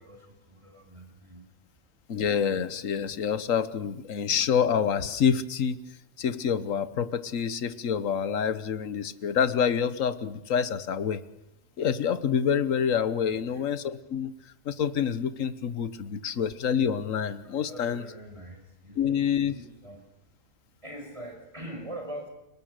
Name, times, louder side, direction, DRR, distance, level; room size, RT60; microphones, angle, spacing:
voice 1, 0.0-1.5 13.3-13.7 16.2-16.3 17.4-20.0 20.8-22.3, right 1 dB, 25° right, 4 dB, 5.5 m, -43 dB
voice 2, 2.1-5.8 6.2-11.2 11.8-14.3 14.6-18.0 19.0-19.5, left 7 dB, 70° left, 13 dB, 1.5 m, -27 dB
30.0 x 19.5 x 6.6 m, 0.85 s
omnidirectional pair, 1.4 m